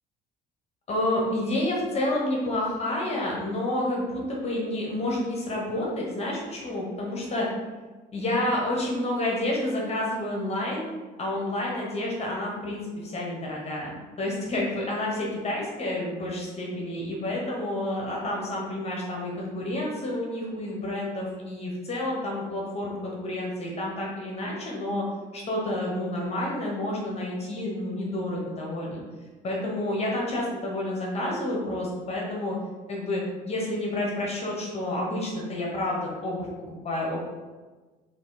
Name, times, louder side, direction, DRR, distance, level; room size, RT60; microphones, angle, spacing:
voice 1, 0.9-7.5 8.1-25.0 25.3-29.0 29.4-32.5 32.9-37.2, left 1 dB, 40° left, -3 dB, 0.9 m, -29 dB
3.8 x 2.6 x 3.8 m, 1.3 s
cardioid pair, 110°, 17 cm